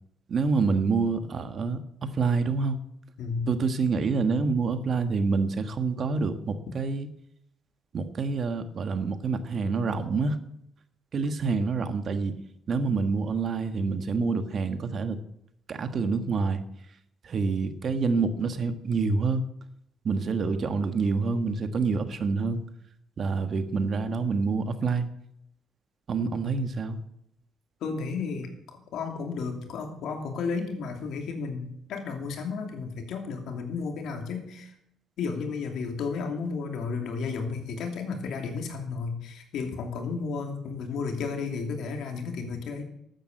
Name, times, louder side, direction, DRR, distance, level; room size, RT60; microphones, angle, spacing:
voice 1, 0.3-2.8 3.5-7.1 7.9-10.4 11.1-12.3 12.7-15.2 15.7-16.6 17.2-19.4 20.0-22.6 23.2-25.1 26.1-27.0, right 4 dB, 50° right, 9 dB, 1.5 m, -27 dB
voice 2, 3.2-3.5 27.8-34.7 35.2-42.8, left 5 dB, 80° left, 4 dB, 2.7 m, -33 dB
12.5 x 8.6 x 7.6 m, 0.76 s
cardioid pair, 90°, 0 cm